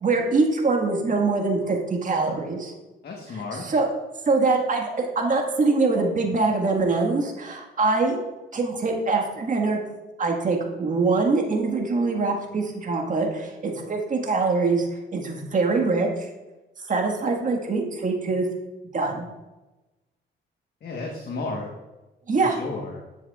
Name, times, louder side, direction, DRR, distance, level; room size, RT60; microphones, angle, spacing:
voice 1, 0.0-2.7 3.5-3.9 4.3-8.2 8.5-9.8 10.2-14.9 15.1-16.3 16.8-18.4 18.9-19.3 22.3-22.6, right 3 dB, 40° right, 1 dB, 1.7 m, -23 dB
voice 2, 3.0-3.7 20.8-21.7 22.3-23.0, left 3 dB, 55° left, 0 dB, 1.3 m, -33 dB
10.5 x 7.1 x 2.4 m, 1.1 s
cardioid pair, 90°, 20 cm